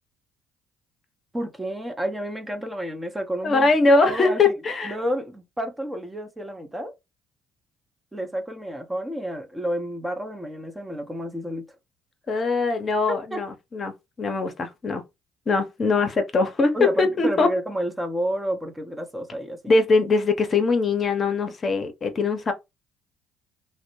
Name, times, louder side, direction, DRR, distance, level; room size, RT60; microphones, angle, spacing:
voice 1, 1.3-3.7 4.0-4.5 4.8-6.9 8.1-11.7 13.3-13.4 16.7-19.6, equal, 15° right, 0.6 m, -30 dB
voice 2, 3.4-5.0 12.3-15.0 15.5-17.5 19.7-22.5, left 3 dB, 40° left, 0.6 m, -22 dB
2.0 x 2.0 x 3.0 m
hypercardioid pair, 60°, 0 cm